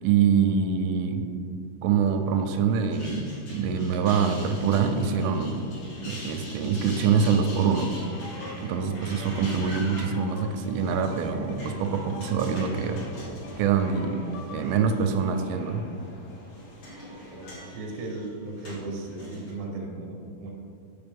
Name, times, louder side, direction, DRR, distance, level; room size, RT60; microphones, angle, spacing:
voice 1, 0.0-1.2 1.8-5.6 6.0-7.9 8.6-13.0 13.6-14.2 14.5-15.8, right 6 dB, 85° right, 6 dB, 3.1 m, -25 dB
sound 1, 2.7-14.5 14.9-15.5 16.3-19.5, left 1 dB, 50° left, 2.1 m, -44 dB
sound 2, 3.8-17.6, left 1 dB, 65° left, 3.1 m, -47 dB
sound 3, 7.0-14.8, left 4 dB, 80° left, 3.2 m, -46 dB
voice 2, 17.3-20.5, right 2 dB, 70° right, -2 dB, 2.3 m, -36 dB
6.9 x 6.8 x 3.5 m, 2.4 s
omnidirectional pair, 5.7 m